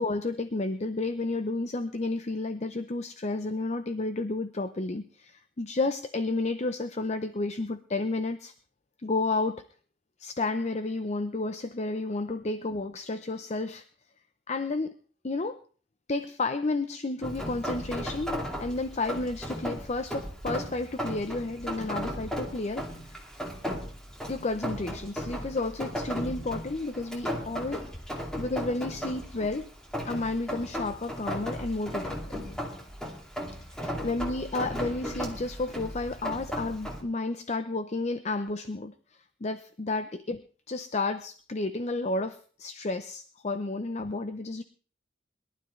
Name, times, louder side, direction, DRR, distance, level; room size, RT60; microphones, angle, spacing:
voice 1, 0.0-8.5 9.0-9.6 10.2-13.8 14.5-14.9 15.2-15.6 16.1-22.9 24.3-27.9 28.1-29.7 30.0-32.4 33.7-44.6, left 2 dB, 40° left, 10 dB, 0.6 m, -31 dB
Rain, 17.2-37.0, equal, 5° left, 2.5 m, -36 dB
22.0 x 12.0 x 3.2 m, 0.40 s
head